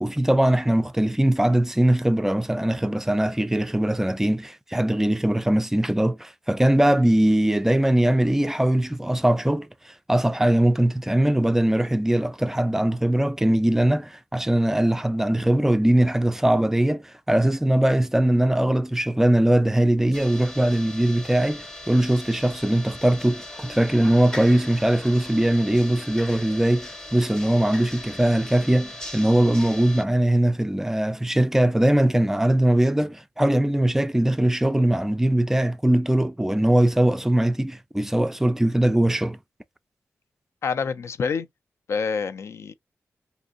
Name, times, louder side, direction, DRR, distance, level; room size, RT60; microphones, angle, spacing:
voice 1, 0.0-9.7 10.1-39.4, right 1 dB, 10° right, 0.3 m, -21 dB
sound 1, 20.1-30.0, left 1 dB, 10° left, 0.7 m, -39 dB
voice 2, 40.6-41.5 41.9-42.7, left 5 dB, 65° left, 0.4 m, -27 dB
3.5 x 2.7 x 2.5 m
wide cardioid pair, 130°, 5 cm